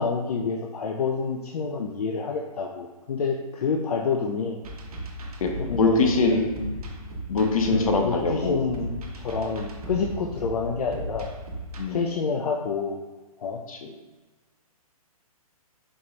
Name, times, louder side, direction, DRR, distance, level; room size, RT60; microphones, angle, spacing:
voice 1, 0.0-4.6 5.6-6.4 7.7-11.3 11.9-13.0 13.4-13.6, left 5 dB, 85° left, 1 dB, 0.5 m, -28 dB
sound 1, 4.6-11.8, equal, 75° right, 0.8 m, -36 dB
voice 2, 5.4-6.7 7.3-8.6 11.8-12.0 13.7-13.9, left 3 dB, 65° left, 2 dB, 0.8 m, -23 dB
4.3 x 2.9 x 3.2 m, 1.2 s
hypercardioid pair, 150°, 19 cm